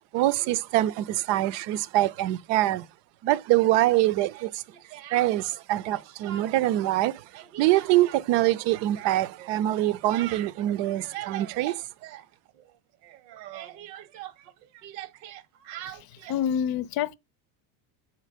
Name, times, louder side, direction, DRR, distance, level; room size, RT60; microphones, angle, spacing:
voice 1, 0.1-2.8 3.2-4.6 5.1-11.9, right 15 dB, 60° right, 0.7 m, -24 dB
Speech, 4.3-5.6 5.9-6.8 7.1-12.8 13.0-16.4, right 13 dB, 85° right, 1.1 m, -42 dB
voice 2, 15.9-17.1, left 9 dB, 45° left, 0.6 m, -28 dB
8.2 x 4.4 x 5.0 m
supercardioid pair, 120°, 49 cm